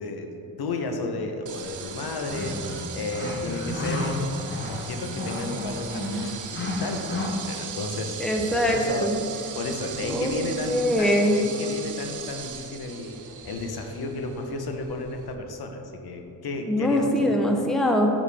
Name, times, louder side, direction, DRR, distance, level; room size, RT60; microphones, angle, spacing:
voice 1, 0.0-4.2 4.7-8.2 8.7-9.1 9.5-17.3, left 3 dB, 65° left, 4 dB, 0.7 m, -33 dB
sound 1, 1.5-15.3, right 7 dB, 50° right, 0.6 m, -39 dB
sound 2, 1.8-7.3, left 1 dB, 30° left, 0.9 m, -32 dB
voice 2, 8.2-9.2 10.1-10.3 10.6-11.4 16.7-18.1, equal, ahead, 2 dB, 0.6 m, -22 dB
6.7 x 5.0 x 3.4 m, 2.7 s
cardioid pair, 80°, 40 cm